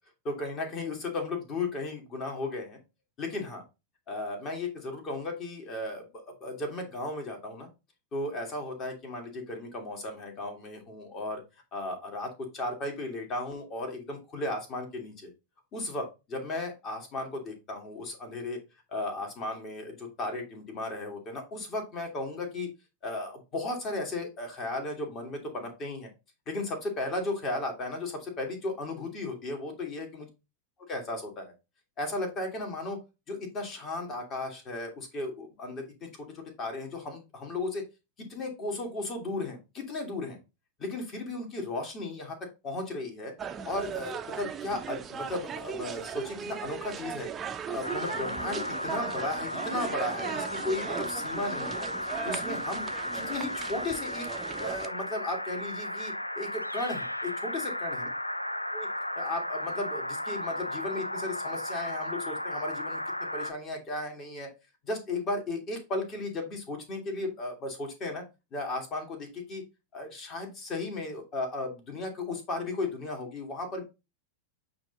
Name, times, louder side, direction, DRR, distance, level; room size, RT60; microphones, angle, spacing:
voice 1, 0.2-2.8 3.2-3.6 4.1-7.7 8.1-11.4 11.7-15.3 15.7-18.6 18.9-22.7 23.0-26.1 26.5-30.3 30.9-31.5 32.0-33.0 33.3-36.1 36.3-37.8 38.2-40.4 40.8-42.4 42.6-43.3 43.6-47.3 47.7-51.9 52.2-52.9 53.1-54.3 54.6-58.1 58.7-58.9 59.2-63.0 63.3-64.5 64.8-68.2 68.5-69.6 69.9-73.8, left 2 dB, 30° left, 3 dB, 2.1 m, -35 dB
sound 1, 43.4-54.9, right 7 dB, 20° right, 0.7 m, -38 dB
sound 2, 47.8-63.5, left 1 dB, 85° left, 0.3 m, -35 dB
8.5 x 2.9 x 3.9 m, 0.26 s
figure-of-eight pair, 90°, 0 cm